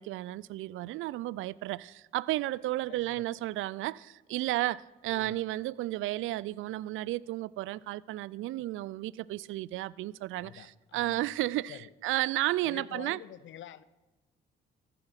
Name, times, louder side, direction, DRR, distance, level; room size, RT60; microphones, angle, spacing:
voice 1, 0.0-13.2, right 16 dB, 75° right, 0.4 m, -33 dB
voice 2, 2.9-3.3 5.1-5.4 10.3-11.3 11.7-11.9 12.6-13.8, left 11 dB, 65° left, 0.7 m, -47 dB
14.5 x 9.9 x 5.9 m
supercardioid pair, 60°, 21 cm